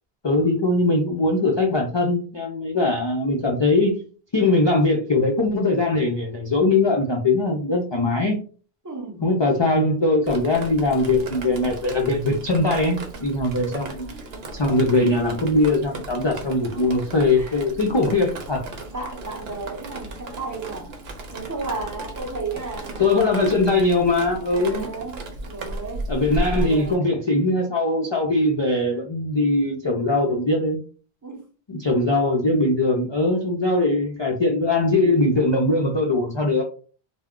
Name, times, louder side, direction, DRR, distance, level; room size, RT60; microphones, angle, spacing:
voice 1, 0.2-4.0 4.3-8.4 9.2-14.1 14.5-18.6 23.0-24.9 26.1-30.8 31.7-36.6, left 2 dB, 45° left, 0.3 m, -21 dB
voice 2, 8.8-9.2 14.9-15.1 17.3-17.5 18.9-20.9 21.3-23.2 24.5-25.2 25.5-26.1 26.6-27.1 31.2-31.4, right 3 dB, 20° right, 0.7 m, -33 dB
Drip, 10.3-27.0, right 2 dB, 75° right, 0.8 m, -35 dB
2.2 x 2.1 x 3.5 m
omnidirectional pair, 1.0 m